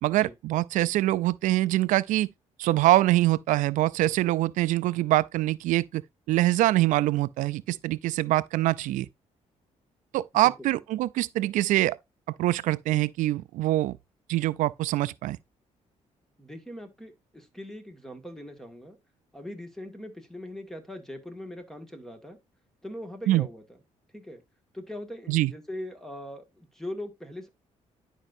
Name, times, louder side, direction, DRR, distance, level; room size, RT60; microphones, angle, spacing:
voice 1, 0.0-2.3 2.6-6.0 6.3-9.1 10.1-12.0 12.4-14.0 14.3-15.4 23.3-23.4 25.3-25.5, right 16 dB, 90° right, 0.4 m, -24 dB
voice 2, 10.3-10.7 16.4-19.0 19.3-22.4 22.8-23.6 24.1-24.4 24.7-27.5, left 1 dB, 5° left, 1.9 m, -41 dB
11.0 x 5.3 x 2.6 m
cardioid pair, 100°, 13 cm